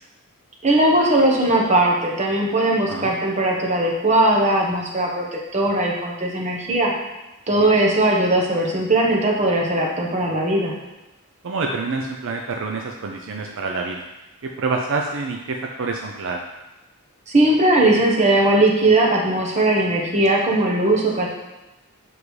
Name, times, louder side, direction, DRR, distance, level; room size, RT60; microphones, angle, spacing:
voice 1, 0.6-6.9 7.5-10.7 17.3-21.3, right 1 dB, 30° right, -1 dB, 1.1 m, -19 dB
voice 2, 11.4-14.0 14.4-16.4, right 3 dB, 60° right, 2 dB, 0.5 m, -27 dB
7.3 x 4.7 x 3.2 m, 1.0 s
head